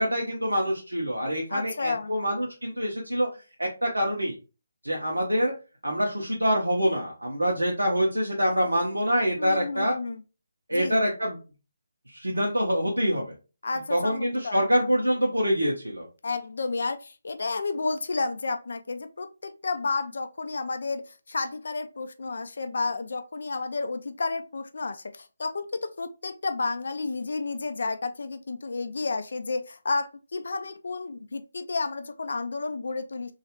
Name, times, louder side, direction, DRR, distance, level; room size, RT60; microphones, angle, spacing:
voice 1, 0.0-3.3 3.6-4.3 4.8-5.5 5.8-9.9 10.7-11.4 12.1-13.3 13.9-16.1, equal, 90° right, 0.7 m, -25 dB
voice 2, 1.5-2.1 9.4-10.2 10.7-11.1 13.6-15.0 16.2-33.3, left 3 dB, 65° left, 0.3 m, -31 dB
3.0 x 2.4 x 2.9 m
figure-of-eight pair, 150°, 0 cm